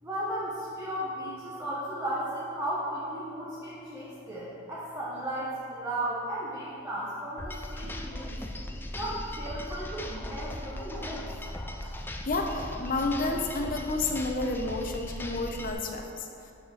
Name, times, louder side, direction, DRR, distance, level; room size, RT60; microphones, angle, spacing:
voice 1, 0.0-8.4 8.9-11.3, right 1 dB, 10° right, -9 dB, 1.0 m, -35 dB
sound 1, 7.4-15.7, left 1 dB, 10° left, 0.3 m, -38 dB
voice 2, 12.3-16.3, left 2 dB, 45° left, 3 dB, 0.7 m, -30 dB
7.1 x 5.4 x 4.4 m, 2.6 s
head